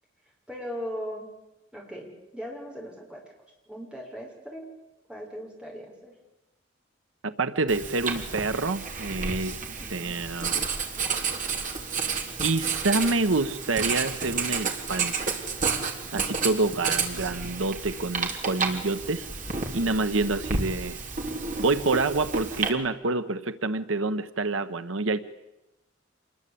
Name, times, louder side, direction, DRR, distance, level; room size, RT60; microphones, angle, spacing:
voice 1, 0.5-1.3 1.7-3.2 3.7-4.7 5.1-6.1 9.7-10.2, equal, 5° right, -1 dB, 6.7 m, -38 dB
voice 2, 7.2-9.6 9.9-10.5 12.4-15.1 16.1-19.3 19.7-21.0 21.6-25.2, right 3 dB, 85° right, 12 dB, 1.1 m, -27 dB
Writing, 7.7-22.7, right 5 dB, 40° right, 3.4 m, -31 dB
27.0 x 21.5 x 8.6 m, 0.95 s
head